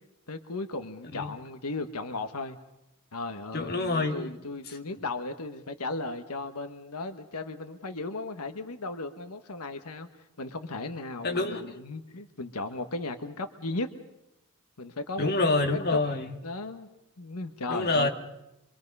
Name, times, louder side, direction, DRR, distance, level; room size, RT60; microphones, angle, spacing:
voice 1, 0.3-2.6 3.1-10.1 10.4-13.9 14.8-15.5 15.9-16.0 16.4-16.9 17.2-18.1, left 3 dB, 90° left, 8 dB, 1.3 m, -36 dB
voice 2, 3.5-4.3 4.7-4.8 11.2-11.8 15.2-16.4 17.7-18.1, left 2 dB, 45° left, 4 dB, 2.0 m, -27 dB
25.0 x 24.5 x 5.5 m, 0.89 s
head